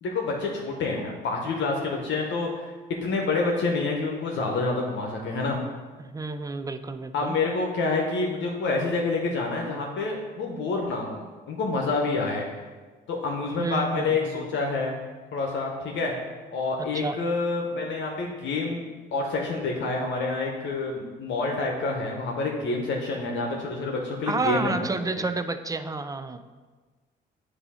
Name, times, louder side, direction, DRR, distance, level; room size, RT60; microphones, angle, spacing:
voice 1, 0.0-2.7 3.0-5.6 7.1-12.5 13.1-14.9 15.3-16.1 16.5-18.8 19.1-24.9 25.2-25.3, left 3 dB, 70° left, 0 dB, 1.0 m, -28 dB
voice 2, 6.0-7.4 13.6-14.4 16.9-17.1 24.3-26.4, right 3 dB, 20° right, 10 dB, 0.4 m, -30 dB
8.0 x 2.8 x 5.6 m, 1.4 s
cardioid pair, 90°, 20 cm